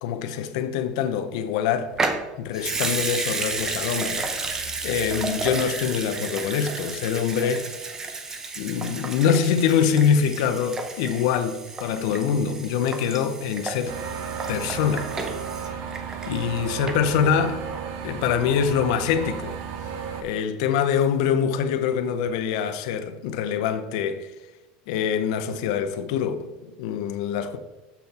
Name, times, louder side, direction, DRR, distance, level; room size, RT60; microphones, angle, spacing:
voice 1, 0.0-1.9 2.4-7.7 8.6-14.0 14.5-15.1 16.3-17.6 18.0-19.5 20.2-24.3 24.9-27.6, left 7 dB, 65° left, 0.7 m, -24 dB
Water tap faucet / Sink (filling or washing) / Liquid, 1.9-16.6 16.9-17.0, right 3 dB, 15° right, 0.6 m, -32 dB
sound 1, 13.9-20.2, right 6 dB, 50° right, 0.9 m, -33 dB
7.1 x 5.9 x 4.2 m
cardioid pair, 175°, 4 cm